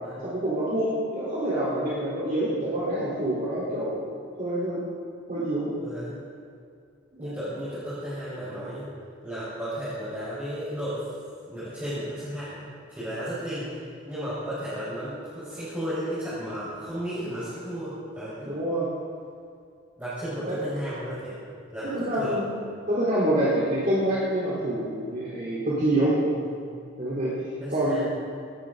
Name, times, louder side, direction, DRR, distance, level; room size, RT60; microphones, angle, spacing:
voice 1, 0.2-4.1 4.4-4.8 5.3-5.7 7.1-7.3 18.4-18.9 20.4-20.6 21.8-22.5 22.9-26.2 27.0-27.3 27.7-28.1, right 1 dB, 40° right, -9 dB, 3.8 m, -26 dB
voice 2, 5.8-6.2 7.2-8.9 9.2-11.0 11.5-13.7 14.0-18.5 20.0-22.4 26.4-26.7 27.6-28.2, equal, 10° right, -12 dB, 5.1 m, -34 dB
19.0 x 18.5 x 4.0 m, 2.4 s
head